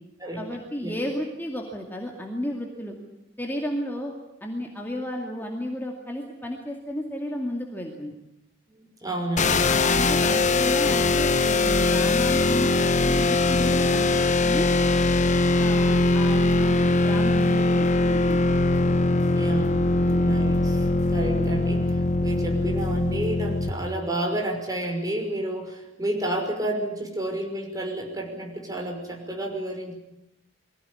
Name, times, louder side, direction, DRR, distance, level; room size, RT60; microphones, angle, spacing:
voice 1, 0.4-2.9 3.4-4.1 4.4-8.1 9.7-14.7 15.6-18.4 20.0-20.2, equal, 10° left, 0 dB, 2.4 m, -33 dB
voice 2, 8.7-9.7 19.3-19.7 20.2-22.0 22.2-29.9, right 1 dB, 20° right, 0 dB, 5.8 m, -30 dB
sound 1, 9.4-23.7, left 2 dB, 40° left, 1.1 m, -21 dB
23.5 x 16.5 x 10.0 m, 0.85 s
head